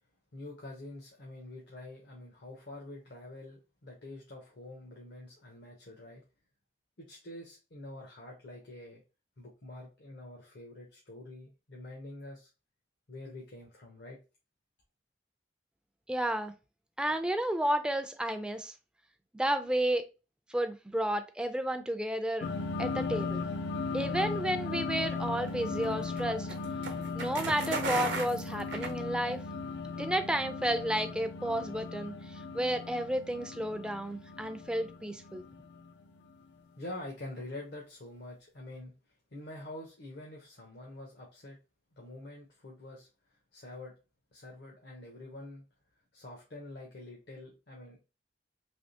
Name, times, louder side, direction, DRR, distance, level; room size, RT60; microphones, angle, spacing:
voice 1, 0.3-6.2 7.0-9.0 9.4-12.5 13.1-14.2 36.7-38.9 39.3-41.6 42.0-43.1 43.5-43.9 44.3-45.7 46.1-48.0, left 1 dB, 70° left, -1 dB, 0.8 m, -46 dB
voice 2, 16.1-16.5 17.0-18.7 19.3-20.1 20.5-22.5 22.8-23.5 23.9-26.5 27.1-29.4 30.0-35.5, right 1 dB, 5° right, 8 dB, 0.3 m, -32 dB
sound 1, 22.4-36.4, left 4 dB, 85° left, 0.5 m, -37 dB
sound 2, 25.1-29.5, right 4 dB, 80° right, 0.8 m, -37 dB
3.4 x 2.8 x 2.7 m, 0.30 s
head